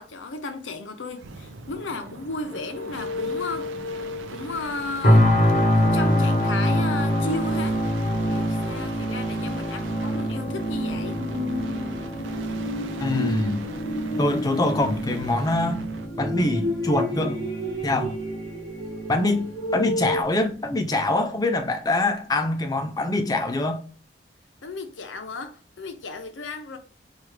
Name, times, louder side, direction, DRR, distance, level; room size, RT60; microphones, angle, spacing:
voice 1, 0.0-5.4 5.7-7.8 8.3-11.2 24.6-26.8, left 3 dB, 85° left, 0.6 m, -34 dB
sound 1, 1.1-16.2 17.9-18.4, right 3 dB, 90° right, 0.5 m, -41 dB
sound 2, 2.5-5.2 10.4-15.5 16.0-20.2, left 2 dB, 60° right, 1.3 m, -32 dB
sound 3, 5.0-20.0 20.5-20.7, equal, 40° left, 0.8 m, -25 dB
voice 2, 13.0-13.6 14.2-15.8 16.2-17.4 17.8-18.2 19.1-19.5 19.7-23.8, left 2 dB, 20° left, 0.4 m, -24 dB
4.6 x 2.4 x 3.2 m
head